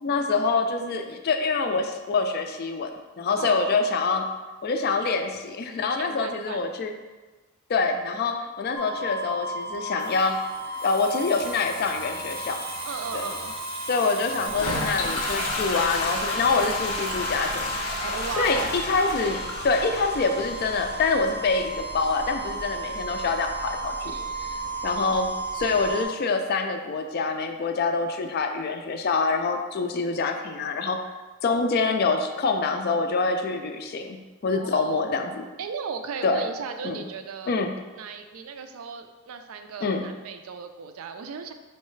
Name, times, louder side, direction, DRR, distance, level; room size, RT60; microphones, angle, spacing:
voice 1, 0.0-4.3 4.6-6.9 7.7-10.5 10.8-12.6 13.1-13.2 13.9-17.7 18.4-24.1 24.8-31.1 31.4-35.4 36.2-36.4 36.8-37.0 37.5-37.8 39.8-40.1, left 4 dB, 45° left, 6 dB, 0.3 m, -26 dB
voice 2, 3.4-3.9 5.7-6.6 12.8-13.5 18.0-18.7 24.1-24.6 34.5-35.0 35.6-37.6 38.0-41.5, right 5 dB, 75° right, 7 dB, 0.4 m, -36 dB
sound 1, 8.7-26.0, right 2 dB, 15° left, 0.6 m, -34 dB
Water tap faucet / Sink (filling or washing), 9.6-18.9 19.2-19.5, right 2 dB, 25° right, 0.6 m, -41 dB
Toilet flush, 14.4-25.9, left 2 dB, 85° left, 0.6 m, -34 dB
4.5 x 3.2 x 3.1 m, 1.2 s
head